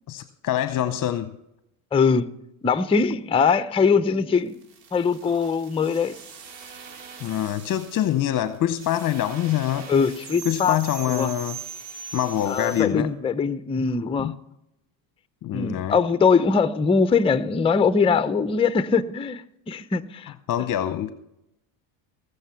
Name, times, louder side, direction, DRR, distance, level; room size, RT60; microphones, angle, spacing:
voice 1, 0.1-1.3 7.2-9.9 10.4-11.6 12.1-13.1 14.2-14.3 15.4-16.0 20.5-21.1, left 11 dB, 40° left, 0.8 m, -25 dB
voice 2, 1.9-2.3 2.6-4.5 4.9-6.2 9.9-10.8 11.1-11.3 12.5-14.3 15.5-20.3, left 5 dB, 10° left, 0.5 m, -22 dB
sound 1, 4.4-12.8, right 7 dB, 90° right, 3.4 m, -41 dB
19.5 x 6.7 x 5.8 m
supercardioid pair, 95°, 50 cm